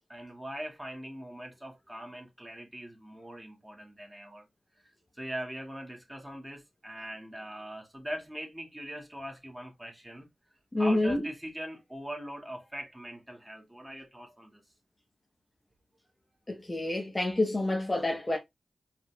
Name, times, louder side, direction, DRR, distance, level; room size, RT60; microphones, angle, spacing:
voice 1, 0.1-4.5 4.8-4.9 5.1-10.3 10.8-14.6, equal, 10° right, 2.3 m, -41 dB
voice 2, 10.7-11.2 16.5-18.4, left 1 dB, 25° left, 1.1 m, -28 dB
4.6 x 4.1 x 2.4 m
cardioid pair, 55°, 0 cm